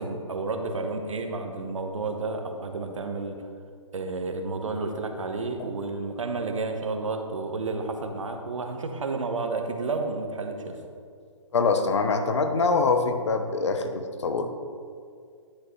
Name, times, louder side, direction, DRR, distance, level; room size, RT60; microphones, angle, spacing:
voice 1, 0.0-3.4 3.9-10.8, right 3 dB, 70° right, 5 dB, 1.1 m, -31 dB
voice 2, 11.5-14.5, left 4 dB, 60° left, 7 dB, 0.9 m, -24 dB
10.0 x 7.9 x 3.2 m, 2.2 s
figure-of-eight pair, 140°, 17 cm